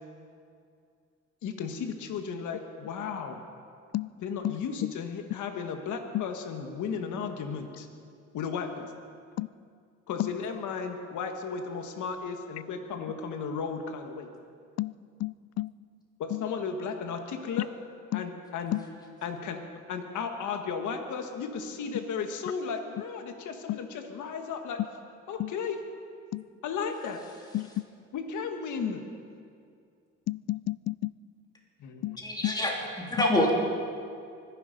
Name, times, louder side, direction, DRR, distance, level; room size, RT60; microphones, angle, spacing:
voice 1, 1.4-3.4 4.2-7.9 8.3-8.9 10.1-14.3 16.2-17.7 18.1-18.8 19.2-19.6 19.9-24.8 25.3-25.8 26.6-27.2 28.1-29.0 31.8-32.2, left 6 dB, 75° left, 5 dB, 1.5 m, -34 dB
voice 2, 15.2-15.7 16.3-16.4 18.1-18.2 18.7-18.8 23.7-23.8 25.4-25.5 26.3-26.4 27.5-27.8 30.3-31.1 32.0-32.2 32.4-32.5 33.2-33.3, left 16 dB, 55° left, 21 dB, 0.4 m, -30 dB
voice 3, 32.2-33.5, left 1 dB, 15° left, -2 dB, 3.4 m, -26 dB
24.5 x 11.0 x 5.3 m, 2.3 s
cardioid pair, 90°, 30 cm